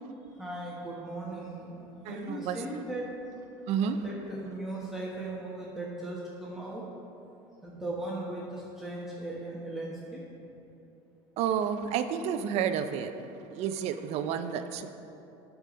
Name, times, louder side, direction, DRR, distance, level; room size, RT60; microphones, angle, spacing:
voice 1, 0.4-3.1 3.8-6.8 7.6-10.2, right 2 dB, 5° right, -6 dB, 1.3 m, -38 dB
voice 2, 2.0-2.6 3.7-4.0 11.4-13.1 13.5-14.9, right 8 dB, 60° right, 9 dB, 0.6 m, -30 dB
9.1 x 6.0 x 5.1 m, 2.9 s
supercardioid pair, 115°, 12 cm